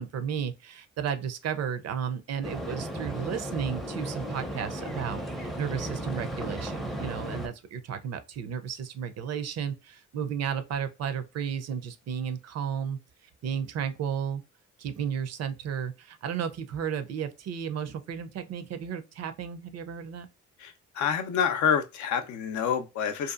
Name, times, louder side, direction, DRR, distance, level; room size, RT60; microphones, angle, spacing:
voice 1, 0.0-13.0 13.4-14.4 14.8-20.3, right 8 dB, 55° right, 0.5 m, -33 dB
sound 1, 2.4-7.5, right 1 dB, ahead, 0.5 m, -35 dB
voice 2, 20.6-23.3, left 7 dB, 70° left, 0.5 m, -27 dB
2.7 x 2.3 x 2.4 m
cardioid pair, 90°, 30 cm